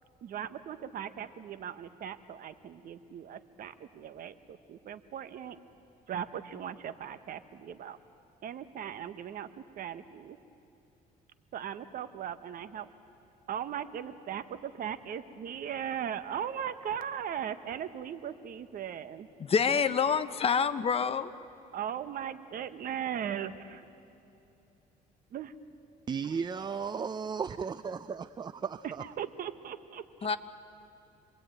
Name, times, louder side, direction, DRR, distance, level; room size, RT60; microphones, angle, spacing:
voice 1, 0.2-5.6 6.1-8.0 8.4-9.5 9.8-10.4 11.5-12.9 13.5-19.3 21.7-23.9 25.3-25.5 28.8-30.3, right 9 dB, 55° right, 11 dB, 1.2 m, -38 dB
voice 2, 19.4-21.4 30.2-30.4, left 6 dB, 35° left, 11 dB, 1.0 m, -27 dB
voice 3, 26.1-29.0, right 6 dB, 25° right, 14 dB, 0.5 m, -35 dB
27.0 x 21.5 x 9.0 m, 2.9 s
cardioid pair, 110°, 17 cm